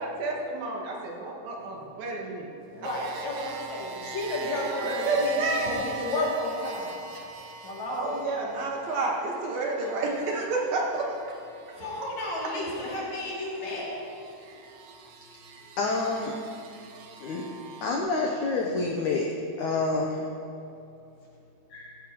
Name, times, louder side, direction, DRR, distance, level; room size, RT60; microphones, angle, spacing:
voice 1, 0.0-2.5 2.8-2.9 4.4-4.6 4.8-5.8 7.9-11.1, right 2 dB, 70° right, -1 dB, 3.3 m, -30 dB
voice 2, 2.7-7.0 7.6-8.2 11.8-13.9, left 1 dB, 50° left, -6 dB, 3.8 m, -32 dB
sound 1, 2.8-18.0, right 5 dB, 85° right, 3.1 m, -43 dB
voice 3, 15.8-16.3 17.2-17.4 17.8-19.3 19.6-20.3 21.7-22.0, left 3 dB, 75° left, 0 dB, 1.8 m, -28 dB
16.5 x 16.0 x 3.1 m, 2.7 s
omnidirectional pair, 4.6 m